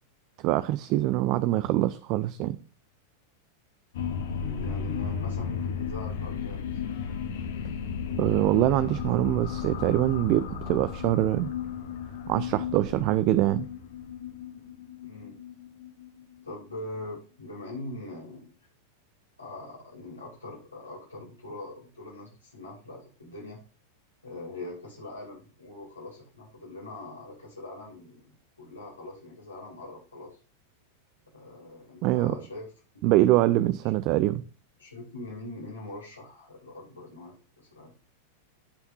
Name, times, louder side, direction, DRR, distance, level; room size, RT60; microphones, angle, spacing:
voice 1, 0.4-2.6 8.2-11.5 12.3-13.7 32.0-32.4 33.0-34.4, right 15 dB, 40° right, 0.4 m, -24 dB
sound 1, 3.9-16.8, left 7 dB, 55° left, 1.4 m, -34 dB
voice 2, 4.4-6.8 15.0-15.4 16.4-18.5 19.4-23.6 24.2-30.4 31.3-32.7 34.8-37.9, left 2 dB, 80° left, 2.9 m, -42 dB
14.5 x 5.7 x 2.7 m
figure-of-eight pair, 90°, 0 cm